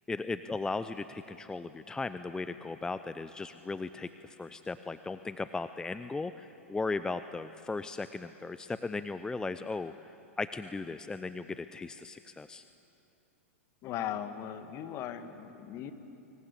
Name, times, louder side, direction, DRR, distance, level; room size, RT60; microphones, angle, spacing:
voice 1, 0.1-10.1 10.4-12.6, left 3 dB, 10° left, 12 dB, 0.6 m, -37 dB
voice 2, 13.8-15.9, left 10 dB, 40° left, 9 dB, 1.9 m, -38 dB
24.5 x 24.0 x 8.5 m, 2.9 s
hypercardioid pair, 105°, 7 cm